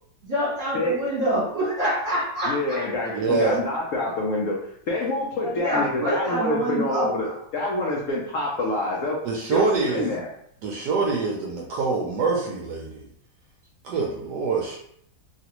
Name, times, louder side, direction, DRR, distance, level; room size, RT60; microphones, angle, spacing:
voice 1, 0.2-2.9 5.4-7.1, right 1 dB, 30° right, -7 dB, 1.3 m, -25 dB
voice 2, 2.5-9.2 9.5-10.3, left 2 dB, 80° left, -3 dB, 0.7 m, -27 dB
voice 3, 3.1-3.6 9.2-10.1 10.6-13.0 13.8-14.8, right 4 dB, 70° right, -2 dB, 1.0 m, -25 dB
3.2 x 2.4 x 2.9 m, 0.68 s
omnidirectional pair, 2.1 m